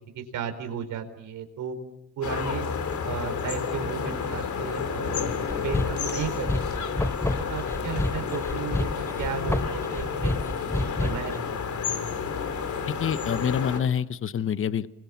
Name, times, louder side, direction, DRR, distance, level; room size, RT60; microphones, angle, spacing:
voice 1, 0.1-1.8 2.2-2.6 3.0-5.3 5.6-6.5 7.4-8.9 9.2-11.6, right 7 dB, 70° right, 7 dB, 4.7 m, -34 dB
sound 1, 2.2-13.8, left 6 dB, 60° left, 3.6 m, -31 dB
sound 2, 5.5-11.4, left 2 dB, 10° left, 1.0 m, -29 dB
voice 2, 13.0-14.9, left 8 dB, 40° left, 14 dB, 0.9 m, -26 dB
29.5 x 24.0 x 7.3 m, 0.83 s
cardioid pair, 80°, 32 cm